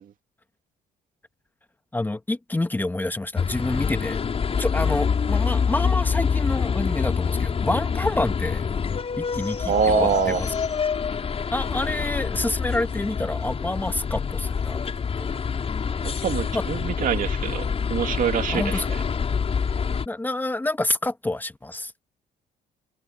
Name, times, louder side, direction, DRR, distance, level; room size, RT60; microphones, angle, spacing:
voice 1, 1.9-4.2 4.6-8.7 9.2-10.5 11.5-15.3 16.5-16.6 18.5-18.9 20.1-21.9, left 2 dB, 10° left, 1.5 m, -28 dB
sound 1, 3.4-20.1, left 6 dB, 35° left, 5.1 m, -26 dB
voice 2, 9.7-10.4 16.0-18.8, right 9 dB, 55° right, 2.5 m, -25 dB
cardioid pair, 110°, 17 cm